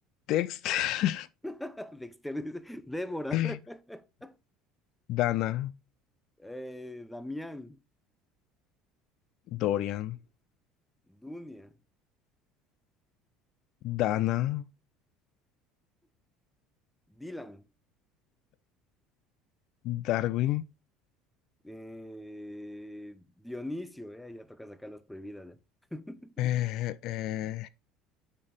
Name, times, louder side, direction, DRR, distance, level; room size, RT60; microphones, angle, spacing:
voice 1, 0.3-1.3 3.3-3.6 5.1-5.7 9.5-10.2 13.8-14.6 19.8-20.6 26.4-27.7, left 14 dB, 60° left, 0.4 m, -29 dB
voice 2, 1.4-4.4 6.4-7.8 11.1-11.7 17.2-17.7 21.6-25.6 25.9-26.5, left 1 dB, 5° left, 0.5 m, -40 dB
7.1 x 4.5 x 3.3 m
cardioid pair, 125°, 0 cm